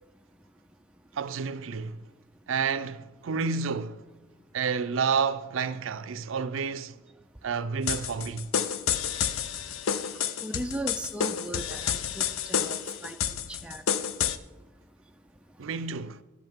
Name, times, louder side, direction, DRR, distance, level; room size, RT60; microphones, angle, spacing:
voice 1, 1.1-2.0 2.5-4.0 4.5-7.0 7.4-8.5 15.6-16.2, right 5 dB, 75° right, 0.5 m, -30 dB
sound 1, 7.9-14.4, left 8 dB, 85° left, 0.5 m, -29 dB
voice 2, 10.4-13.2 13.5-13.8, right 1 dB, 5° right, 0.4 m, -37 dB
13.5 x 11.5 x 3.6 m
head